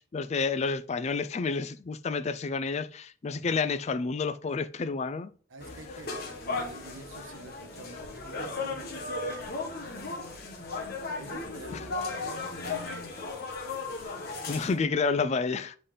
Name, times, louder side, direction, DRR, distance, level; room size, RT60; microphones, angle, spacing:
voice 1, 0.0-5.3 14.5-15.8, left 4 dB, 35° left, 0.4 m, -29 dB
voice 2, 5.5-10.6 10.9-13.1 14.4-14.6, right 2 dB, 85° right, 1.1 m, -49 dB
sound 1, 5.6-14.8, left 3 dB, 55° left, 1.4 m, -36 dB
8.1 x 3.9 x 3.8 m
head